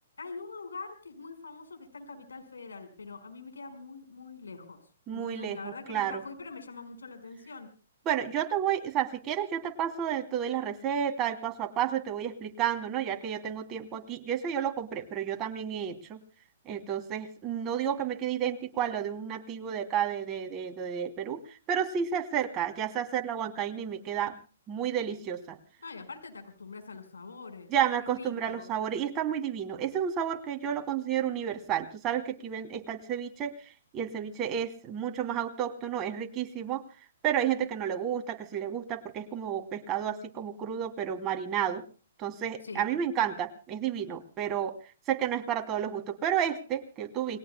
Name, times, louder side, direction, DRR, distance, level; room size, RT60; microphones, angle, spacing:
voice 1, 0.2-4.8 5.1-7.7 25.8-27.7 28.0-28.7 42.6-42.9, left 4 dB, 85° left, 7 dB, 5.3 m, -44 dB
voice 2, 5.1-6.2 8.0-16.2 16.7-21.4 21.7-24.4 24.7-25.6 27.7-33.5 33.9-36.8 37.2-41.8 42.2-44.8 45.1-47.4, right 9 dB, 25° right, 5 dB, 3.0 m, -31 dB
29.0 x 22.0 x 2.3 m, 0.37 s
hypercardioid pair, 130°, 0 cm